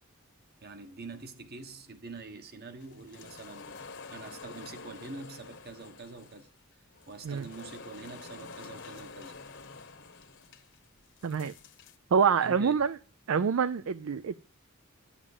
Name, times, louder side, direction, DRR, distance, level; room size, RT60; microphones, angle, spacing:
voice 1, 0.6-3.8 4.1-6.5 7.1-9.3 12.4-12.9, right 3 dB, 45° right, 1.3 m, -45 dB
sound 1, 2.8-12.0, left 4 dB, 55° left, 1.1 m, -48 dB
voice 2, 11.2-11.5 12.1-13.0 13.3-14.3, right 6 dB, 70° right, 0.4 m, -26 dB
9.7 x 7.3 x 7.2 m
head